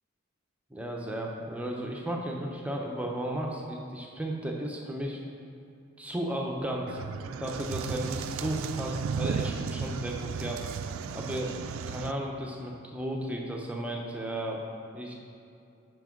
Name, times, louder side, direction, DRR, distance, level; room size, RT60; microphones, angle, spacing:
voice 1, 0.7-5.2 6.0-7.0 7.4-10.6 11.1-11.6 11.9-14.6 14.9-15.1, right 1 dB, 5° right, -1 dB, 0.7 m, -34 dB
sound 1, 6.9-12.1, right 6 dB, 85° right, 0.3 m, -34 dB
12.0 x 5.2 x 3.7 m, 2.5 s
head